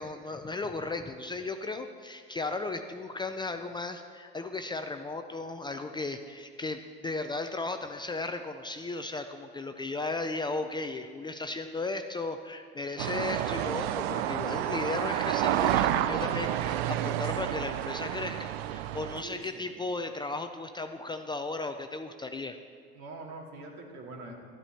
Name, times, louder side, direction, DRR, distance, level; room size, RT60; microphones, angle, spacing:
voice 1, 0.0-22.6, left 3 dB, 15° left, 7 dB, 0.4 m, -35 dB
sound 1, 13.0-19.2, right 12 dB, 85° right, 0.5 m, -30 dB
voice 2, 19.2-19.7 23.0-24.3, right 2 dB, 65° right, 0 dB, 2.2 m, -44 dB
12.0 x 9.9 x 4.3 m, 2.1 s
supercardioid pair, 100°, 30 cm